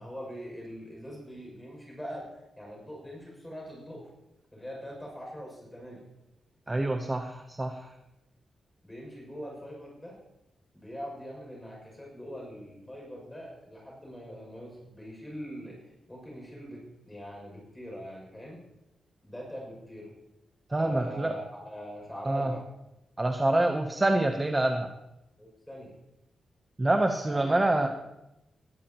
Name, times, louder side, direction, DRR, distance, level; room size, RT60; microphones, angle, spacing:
voice 1, 0.0-4.1 4.5-6.0 8.8-10.2 10.7-15.7 16.1-18.6 19.2-20.1 20.7-22.6 25.4-25.9 27.3-27.9, equal, 5° left, -2 dB, 6.3 m, -42 dB
voice 2, 6.7-7.9 20.7-21.4 22.3-22.5 23.2-24.9 26.8-27.9, right 2 dB, 15° right, 4 dB, 0.8 m, -26 dB
20.5 x 14.0 x 3.0 m, 0.92 s
wide cardioid pair, 175°, 0 cm